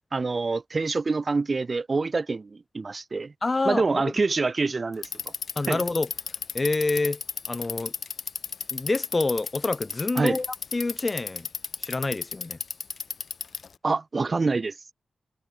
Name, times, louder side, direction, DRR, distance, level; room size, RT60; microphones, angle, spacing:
voice 1, 0.1-3.3 3.6-5.1 5.7-5.8 10.2-10.4 13.8-14.7, right 3 dB, 35° right, 2.8 m, -26 dB
voice 2, 3.4-4.1 5.6-6.1 6.5-7.2 7.5-7.9 8.7-10.5 10.7-11.5 11.8-12.6, left 3 dB, 25° left, 1.9 m, -27 dB
Bicycle, 4.9-13.7, left 5 dB, 55° left, 1.0 m, -33 dB
wide cardioid pair, 175°, 0 cm